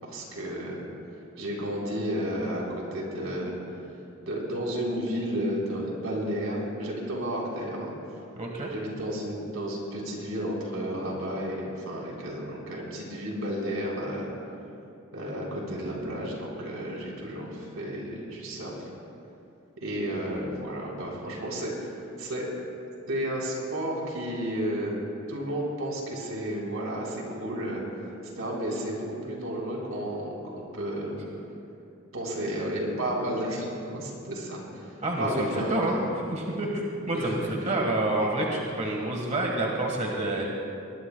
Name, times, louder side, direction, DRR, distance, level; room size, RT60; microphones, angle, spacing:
voice 1, 0.0-0.8 1.4-3.5 4.2-7.9 8.7-14.3 15.1-18.9 19.8-21.9 22.2-22.5 23.1-25.0 25.3-27.8 28.2-31.2 32.1-34.9 35.2-36.1 37.1-37.3, equal, 85° right, -3 dB, 3.8 m, -32 dB
voice 2, 8.4-8.7 35.0-36.0 36.3-40.5, right 1 dB, 35° right, -1 dB, 1.4 m, -28 dB
21.5 x 19.5 x 2.2 m, 2.6 s
head